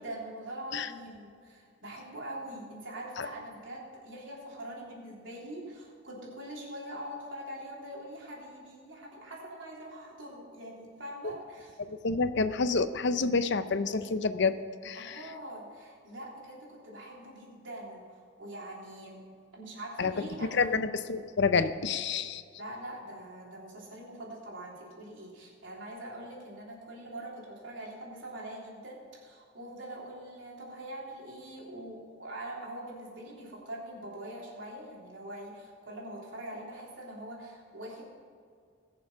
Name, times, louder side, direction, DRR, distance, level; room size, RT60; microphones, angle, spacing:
voice 1, 0.0-11.8 14.9-19.2 19.5-20.8 22.6-38.1, right 1 dB, 75° right, -4 dB, 3.6 m, -43 dB
voice 2, 11.9-14.5 14.8-15.2 20.0-20.1 20.5-22.4, left 4 dB, 65° left, 11 dB, 0.6 m, -28 dB
20.5 x 6.9 x 5.7 m, 2.2 s
head